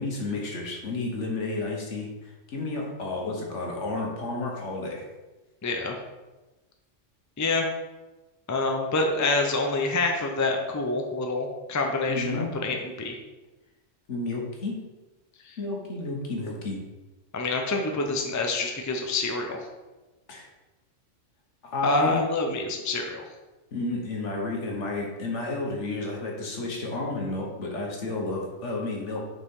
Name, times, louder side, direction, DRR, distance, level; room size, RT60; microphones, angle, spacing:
voice 1, 0.0-5.0 12.1-12.6 14.1-14.8 15.6-16.8 20.3-20.5 21.6-22.2 23.7-29.2, left 2 dB, 70° left, -1 dB, 1.6 m, -31 dB
voice 2, 5.6-6.0 7.4-7.7 8.5-13.2 15.5-15.6 17.3-19.6 21.8-23.2, left 3 dB, 20° left, 2 dB, 0.5 m, -27 dB
6.8 x 5.1 x 3.7 m, 1.1 s
omnidirectional pair, 1.3 m